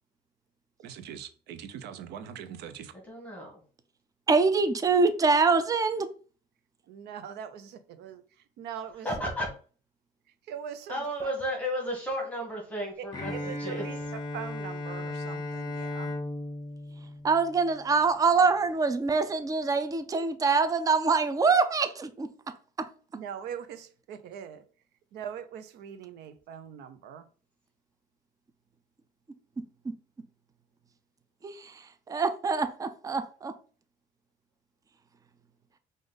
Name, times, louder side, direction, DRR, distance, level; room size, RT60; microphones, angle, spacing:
voice 1, 0.8-2.9 6.9-9.3 10.5-11.3 13.0-16.2 23.1-24.6 25.1-27.3, right 8 dB, 80° right, 0.7 m, -42 dB
voice 2, 3.1-3.5 9.0-9.5 10.9-13.3 13.6-13.8, equal, 10° left, 1.6 m, -33 dB
voice 3, 4.3-6.1 17.2-22.3 22.8-22.9 31.4-31.7 32.1-33.5, right 4 dB, 20° right, 0.5 m, -24 dB
Bowed string instrument, 13.1-18.0, left 2 dB, 25° left, 1.1 m, -36 dB
5.1 x 2.6 x 3.9 m
cardioid pair, 110°, 17 cm